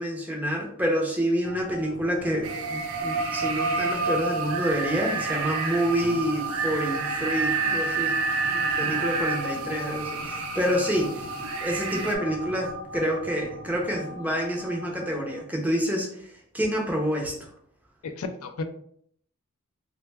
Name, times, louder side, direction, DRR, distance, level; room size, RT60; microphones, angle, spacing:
voice 1, 0.0-8.2 8.4-11.3 11.6-16.1 16.5-17.3, equal, 5° right, -1 dB, 0.6 m, -28 dB
sound 1, 1.4-15.4, right 2 dB, 50° right, 0.8 m, -33 dB
sound 2, 2.4-12.2, right 5 dB, 70° right, 0.4 m, -31 dB
voice 2, 8.8-9.2 18.0-18.6, left 4 dB, 75° left, 7 dB, 0.4 m, -35 dB
3.3 x 2.2 x 3.3 m, 0.65 s
head